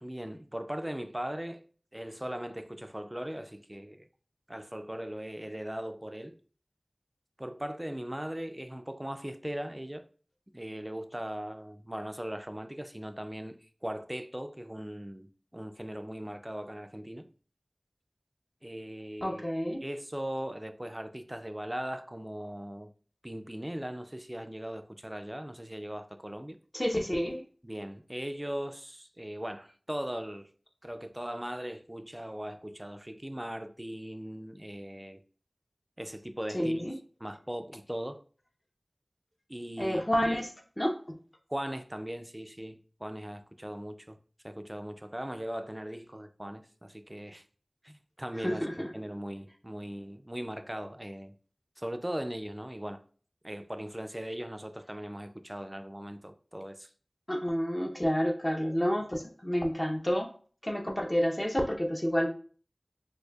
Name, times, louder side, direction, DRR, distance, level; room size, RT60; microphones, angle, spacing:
voice 1, 0.0-1.6 1.9-4.1 4.5-6.4 7.4-10.0 10.5-17.3 18.6-19.4 19.8-22.9 23.2-26.6 27.6-30.5 30.8-35.2 36.0-36.8 37.2-38.2 39.5-40.4 41.5-44.2 44.4-47.4 47.8-51.3 51.8-53.0 53.4-56.9, equal, 20° right, 0.3 m, -39 dB
voice 2, 19.2-19.8 26.7-27.4 36.5-36.9 39.8-40.5 40.8-41.2 48.4-48.9 57.3-60.3 60.6-62.3, equal, 30° left, 0.6 m, -29 dB
4.2 x 2.6 x 2.3 m
wide cardioid pair, 45°, 0 cm